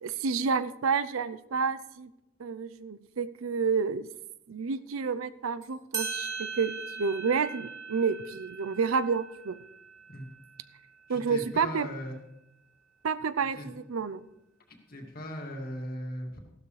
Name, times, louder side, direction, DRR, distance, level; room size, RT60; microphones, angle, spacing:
voice 1, 0.0-2.1 2.4-4.1 4.5-9.6 11.1-11.9 13.0-14.2, right 5 dB, 90° right, 14 dB, 0.6 m, -30 dB
sound 1, 5.6-5.7 5.9-11.0, right 5 dB, 20° right, 2.6 m, -40 dB
voice 2, 11.1-12.2 13.5-13.7 14.7-16.4, equal, 45° left, 1 dB, 2.2 m, -39 dB
15.0 x 12.0 x 3.2 m, 0.85 s
head